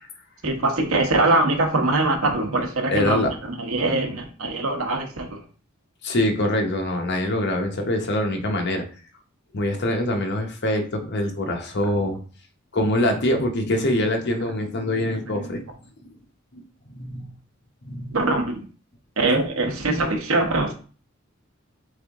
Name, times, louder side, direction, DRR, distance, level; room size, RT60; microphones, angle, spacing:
voice 1, 0.4-3.3 3.6-5.4 18.1-18.6 19.2-20.7, right 2 dB, 80° right, 4 dB, 0.9 m, -22 dB
voice 2, 2.9-3.3 6.0-8.8 9.5-12.2 12.7-15.7 16.0-16.1 16.5-16.6 16.9-17.3 17.9-18.1, left 1 dB, 55° left, 3 dB, 0.8 m, -24 dB
3.7 x 3.4 x 3.5 m, 0.39 s
head